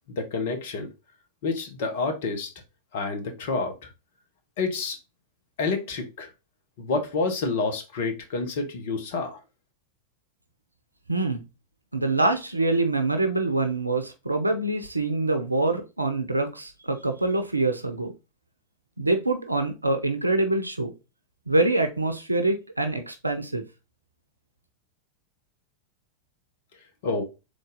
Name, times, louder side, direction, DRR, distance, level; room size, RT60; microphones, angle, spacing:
voice 1, 0.1-0.9 1.4-2.5 2.9-3.7 4.6-5.0 5.6-6.3 6.8-9.4 27.0-27.2, left 3 dB, 55° left, 4 dB, 1.1 m, -28 dB
voice 2, 11.1-11.5 11.9-18.1 19.0-20.9 21.5-23.6, right 2 dB, 85° right, 6 dB, 0.5 m, -25 dB
3.9 x 3.3 x 4.0 m, 0.28 s
figure-of-eight pair, 90°, 0 cm